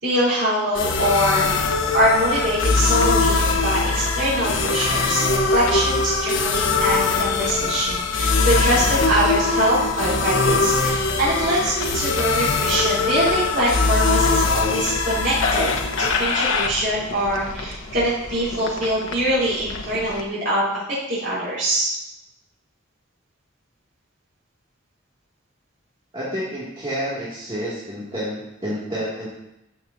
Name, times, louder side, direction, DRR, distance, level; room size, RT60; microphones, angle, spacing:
voice 1, 0.0-1.5 1.9-15.7 16.0-22.0, right 1 dB, 70° right, -11 dB, 3.8 m, -23 dB
sound 1, 0.7-20.2, left 4 dB, 85° left, 1.1 m, -22 dB
voice 2, 26.1-29.3, equal, 25° right, -9 dB, 2.4 m, -29 dB
13.0 x 7.1 x 2.8 m, 0.87 s
head